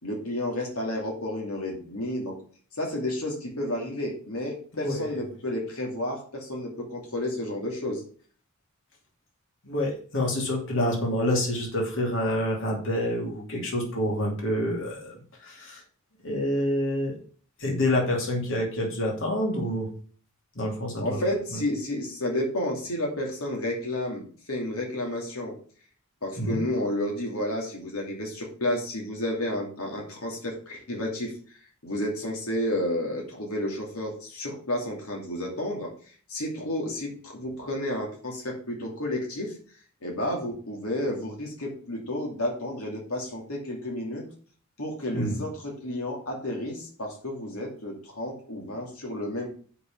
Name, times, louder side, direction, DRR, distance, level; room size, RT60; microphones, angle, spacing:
voice 1, 0.0-2.4 2.8-8.0 21.0-25.5 26.2-31.3 31.8-39.5 40.0-44.3 44.8-49.5, left 1 dB, 90° left, -1 dB, 2.6 m, -31 dB
voice 2, 4.7-5.2 9.6-15.8 16.2-17.1 17.6-19.9 20.5-21.2 21.5-21.6 26.4-26.6 45.1-45.4, left 1 dB, 65° left, -1 dB, 2.9 m, -27 dB
6.6 x 5.5 x 7.0 m, 0.43 s
head